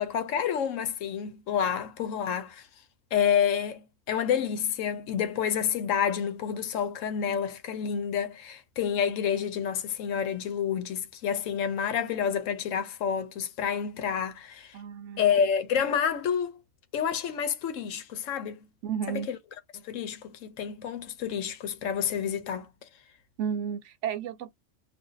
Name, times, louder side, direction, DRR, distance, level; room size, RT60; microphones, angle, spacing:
voice 1, 0.0-2.7 3.1-14.8 15.2-16.6 16.9-18.7 19.1-19.4 19.7-22.7, left 8 dB, 85° left, 1.0 m, -29 dB
voice 2, 14.7-15.3 18.8-19.3 23.4-24.5, right 8 dB, 75° right, 0.9 m, -32 dB
2.5 x 2.4 x 3.8 m
omnidirectional pair, 1.3 m